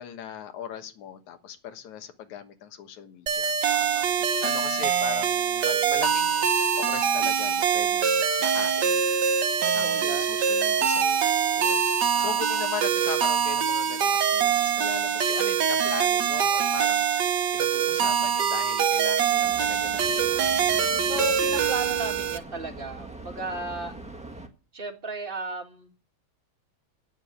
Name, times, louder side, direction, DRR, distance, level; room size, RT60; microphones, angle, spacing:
voice 1, 0.0-9.1 9.7-11.3 11.6-20.3, left 10 dB, 80° left, 2.7 m, -39 dB
sound 1, 3.3-22.4, right 7 dB, 65° right, 1.1 m, -24 dB
voice 2, 3.7-4.2 9.8-10.9 12.1-12.7 17.9-18.3 21.0-24.0 24.7-26.0, right 2 dB, 25° right, 1.4 m, -36 dB
sound 2, 19.4-24.5, right 2 dB, 5° right, 0.5 m, -42 dB
10.5 x 9.2 x 9.8 m
omnidirectional pair, 3.3 m